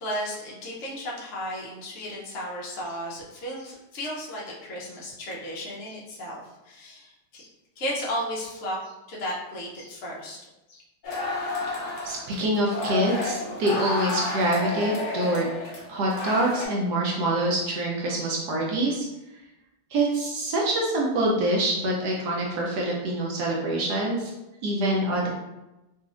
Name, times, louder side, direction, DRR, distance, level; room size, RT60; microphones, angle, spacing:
voice 1, 0.0-7.5 7.8-10.4 10.7-10.8, equal, 90° left, -4 dB, 0.6 m, -34 dB
sound 1, 11.0-16.7, left 2 dB, 60° left, 0.8 m, -31 dB
voice 2, 11.8-15.5 15.9-19.1 19.9-24.3 24.6-25.3, right 1 dB, 75° right, -2 dB, 1.0 m, -25 dB
4.0 x 2.4 x 2.4 m, 0.97 s
omnidirectional pair, 2.2 m